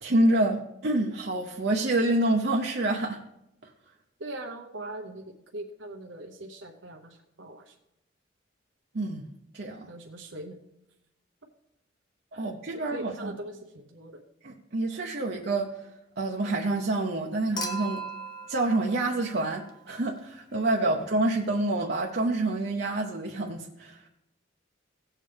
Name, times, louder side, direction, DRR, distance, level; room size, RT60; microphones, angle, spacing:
voice 1, 0.0-3.2 8.9-9.2 9.5-9.9 12.3-13.3 14.4-15.7 16.2-18.0 18.5-24.1, right 2 dB, 55° right, 0 dB, 0.8 m, -27 dB
voice 2, 4.2-7.7 9.9-10.6 12.3-12.5 12.7-14.2 20.8-20.9, right 1 dB, 85° right, 2 dB, 0.9 m, -41 dB
Human group actions / Chink clink / Liquid, 17.6-19.9 21.4-21.5, right 2 dB, 20° left, 0.8 m, -38 dB
17.0 x 7.3 x 3.4 m, 0.86 s
head